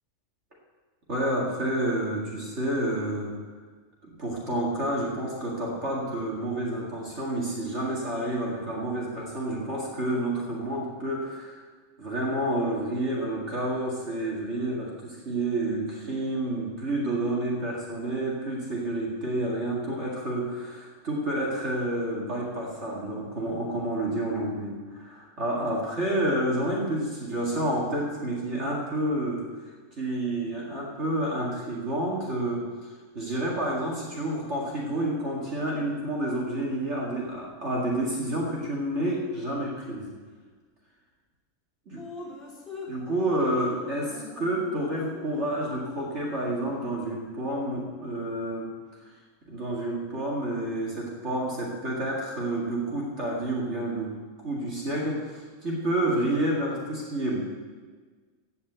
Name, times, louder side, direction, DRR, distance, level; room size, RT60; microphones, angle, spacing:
voice 1, 1.1-3.3 4.0-11.6 12.0-29.4 30.0-32.7 33.1-40.1 41.9-42.0 42.9-48.7 49.0-49.1 49.5-57.4, right 1 dB, 50° right, -3 dB, 2.4 m, -29 dB
Drip, 42.0-47.2, left 3 dB, 45° left, 2.3 m, -44 dB
16.0 x 5.4 x 8.0 m, 1.5 s
omnidirectional pair, 1.5 m